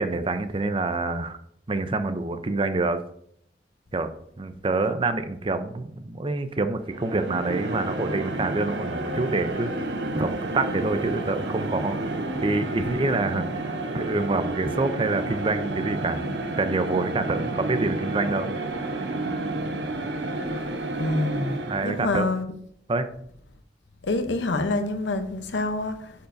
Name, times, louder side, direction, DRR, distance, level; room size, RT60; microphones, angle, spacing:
voice 1, 0.0-1.4 1.7-3.0 3.9-9.7 10.1-12.1 12.4-13.7 13.9-16.2 16.6-18.5 21.7-22.3 22.9-23.1, right 3 dB, 30° right, 0.5 m, -26 dB
sound 1, 6.8-22.1, right 2 dB, 80° right, 0.9 m, -30 dB
voice 2, 21.0-22.5 24.0-26.1, left 2 dB, 90° left, 0.8 m, -27 dB
8.9 x 7.0 x 2.6 m
head